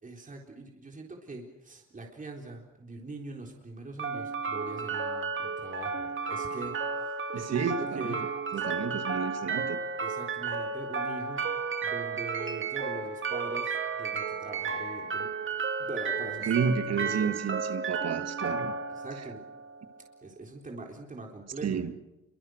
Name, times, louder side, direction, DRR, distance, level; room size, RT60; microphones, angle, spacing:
voice 1, 0.0-8.3 8.5-8.7 10.0-11.5 11.8-15.3 15.8-16.5 16.9-17.3 18.9-19.4 20.2-21.8, right 2 dB, 25° right, 4.0 m, -42 dB
sound 1, 4.0-20.0, right 5 dB, 40° right, 2.5 m, -33 dB
voice 2, 7.3-8.2 8.5-9.8 16.5-18.7 21.6-21.9, right 6 dB, 55° right, 2.0 m, -31 dB
27.5 x 24.0 x 6.5 m
cardioid pair, 90°, 30 cm